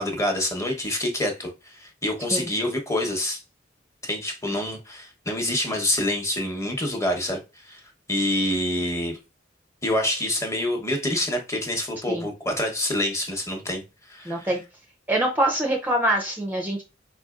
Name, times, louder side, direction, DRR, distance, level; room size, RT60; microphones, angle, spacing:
voice 1, 0.0-3.4 4.0-7.8 8.1-9.2 9.8-13.8 14.1-14.5, left 1 dB, 15° left, 0.9 m, -27 dB
voice 2, 14.3-14.6 15.1-16.8, right 1 dB, 10° right, 0.5 m, -24 dB
4.8 x 4.1 x 2.4 m
head